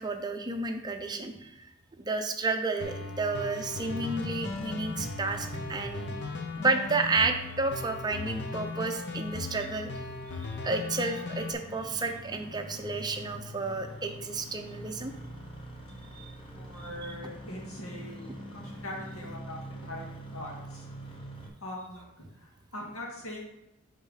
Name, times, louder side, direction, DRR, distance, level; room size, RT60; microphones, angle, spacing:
voice 1, 0.0-1.5 2.0-6.1 6.6-10.0 10.6-15.1 16.2-16.3, right 3 dB, 20° right, 4 dB, 0.6 m, -31 dB
sound 1, 2.8-11.5, left 3 dB, 55° left, 0.8 m, -38 dB
Engine starting, 3.5-21.5, equal, 25° left, 1.0 m, -45 dB
voice 2, 16.6-20.9 21.6-23.5, left 1 dB, 85° left, -3 dB, 2.1 m, -42 dB
6.1 x 3.7 x 5.6 m, 0.91 s
head